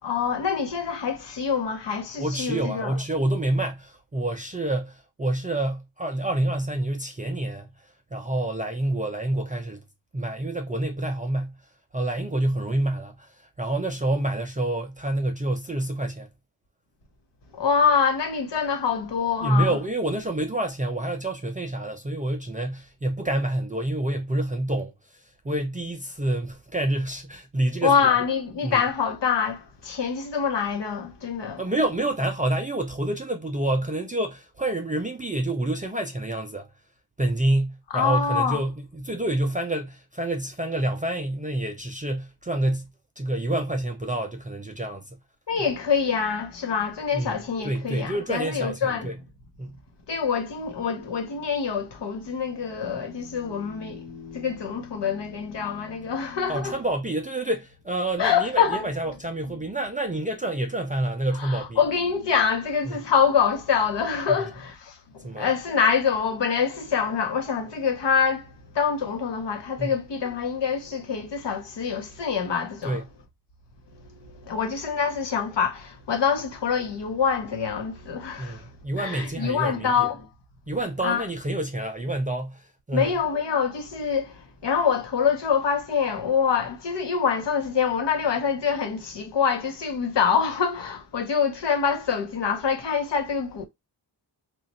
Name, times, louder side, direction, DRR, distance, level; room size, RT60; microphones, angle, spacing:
voice 1, 0.0-3.0 17.5-19.8 27.8-31.6 37.9-38.6 45.5-49.1 50.1-56.7 58.2-58.8 61.4-68.5 68.7-73.0 74.5-78.6 79.0-80.3 81.0-81.2 82.9-93.7, left 6 dB, 65° left, 1.0 m, -25 dB
voice 2, 2.2-7.7 8.1-9.8 10.1-11.6 11.9-16.3 19.4-24.9 25.4-28.2 28.6-28.8 31.6-36.7 37.2-42.9 43.2-45.1 47.1-47.4 47.6-49.2 49.6-49.8 56.5-61.8 62.8-63.0 64.3-64.4 65.2-65.5 69.8-69.9 72.8-73.1 78.4-80.1 80.7-83.1, right 1 dB, 20° right, 0.4 m, -28 dB
3.1 x 2.4 x 4.0 m
wide cardioid pair, 165°, 46 cm